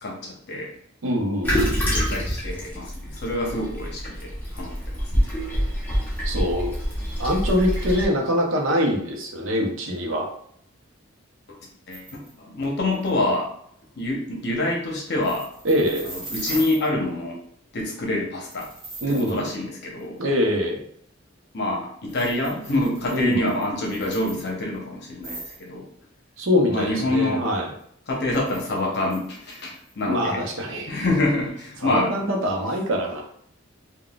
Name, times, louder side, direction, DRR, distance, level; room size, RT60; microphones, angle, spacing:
voice 1, 0.0-0.7 1.9-5.3 11.9-13.5 14.0-15.5 16.0-17.4 17.7-18.7 19.1-20.2 21.5-25.8 26.7-27.4 28.1-30.4 30.9-32.1, left 1 dB, 55° left, -1 dB, 0.8 m, -26 dB
voice 2, 1.0-1.8 6.2-6.7 7.2-10.3 15.6-16.0 19.0-19.5 20.2-20.8 23.1-23.5 26.4-27.7 30.0-30.9 31.8-33.2, equal, 70° right, 1 dB, 0.7 m, -24 dB
Toilet flush, 1.4-8.1, equal, 10° left, 0.8 m, -26 dB
sound 1, 11.9-12.3 12.6-12.7 12.9-13.1 15.2-16.9 18.5-19.5 20.0-20.1 22.1-24.8 25.2-25.6 28.3-30.0, right 2 dB, 25° right, 1.3 m, -39 dB
3.7 x 2.3 x 2.3 m, 0.66 s
head